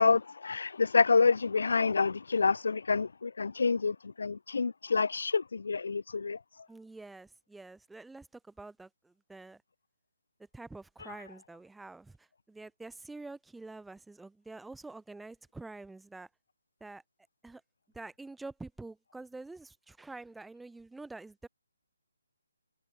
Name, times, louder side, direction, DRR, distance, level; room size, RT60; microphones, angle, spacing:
voice 1, 0.0-6.4, left 4 dB, 70° left, 0.6 m, -27 dB
voice 2, 6.7-9.6 10.5-16.3 16.8-17.0 17.4-17.6 17.9-21.5, right 3 dB, 5° right, 6.2 m, -47 dB
figure-of-eight pair, 150°, 0 cm